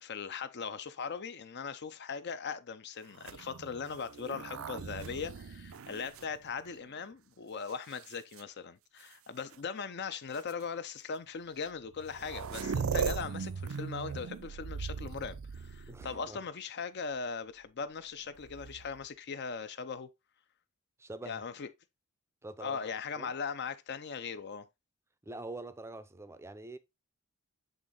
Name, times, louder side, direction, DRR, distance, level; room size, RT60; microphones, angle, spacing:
voice 1, 0.0-20.1 21.3-21.7 22.6-24.7, left 5 dB, 50° left, 0.5 m, -39 dB
sound 1, 3.1-7.0 7.7-8.4 9.5-9.6 10.3-10.5 11.7-11.8 11.9-16.4 18.3-19.0, right 6 dB, 65° right, 0.5 m, -39 dB
voice 2, 15.9-16.4 21.0-21.4 22.4-22.8 23.2-23.3 25.2-26.8, right 2 dB, 10° right, 0.5 m, -45 dB
8.0 x 3.6 x 3.8 m
head